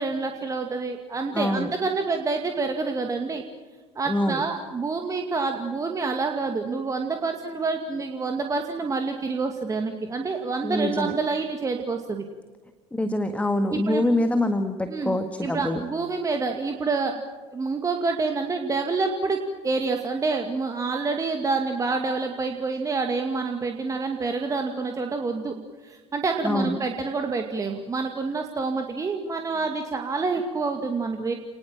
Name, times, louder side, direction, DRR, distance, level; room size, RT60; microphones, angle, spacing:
voice 1, 0.0-3.4 4.0-12.2 13.7-14.0 14.9-17.2 17.5-25.5 25.8-31.3, right 4 dB, 20° right, 4 dB, 2.3 m, -27 dB
voice 2, 1.3-1.7 4.1-4.4 10.6-11.1 12.9-15.8 26.4-26.8, left 1 dB, 10° left, 8 dB, 1.8 m, -25 dB
29.5 x 20.0 x 7.5 m, 1.3 s
figure-of-eight pair, 65°, 15 cm